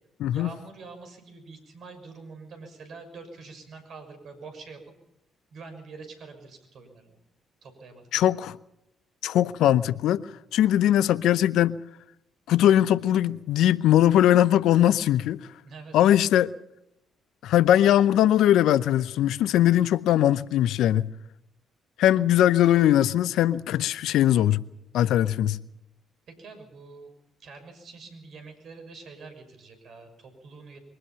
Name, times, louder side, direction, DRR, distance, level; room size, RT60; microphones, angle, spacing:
voice 1, 0.3-4.9 5.5-7.2 7.6-8.0 15.6-16.0 22.1-22.3 26.3-27.1 27.4-30.8, right 4 dB, 55° right, 6.3 m, -45 dB
voice 2, 8.1-8.6 9.2-10.3 10.5-11.8 12.5-15.5 15.9-16.5 17.4-21.1 22.0-24.6 24.9-25.6, left 12 dB, 65° left, 0.7 m, -20 dB
23.5 x 19.0 x 5.8 m
hypercardioid pair, 45°, 0 cm